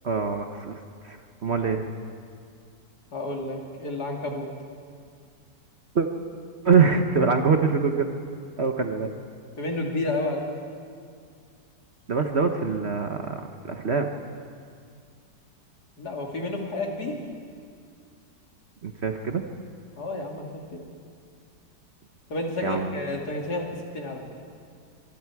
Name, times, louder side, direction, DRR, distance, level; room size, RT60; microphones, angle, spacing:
voice 1, 0.0-1.9 5.9-6.1 6.6-8.1 8.6-9.1 12.1-14.1 18.8-19.4 22.6-22.9, right 5 dB, 45° right, 5 dB, 1.1 m, -24 dB
voice 2, 3.1-4.5 9.6-10.4 16.0-17.2 20.0-20.8 22.3-24.2, left 2 dB, 65° left, 0 dB, 3.0 m, -30 dB
23.5 x 23.5 x 4.7 m, 2.2 s
omnidirectional pair, 1.8 m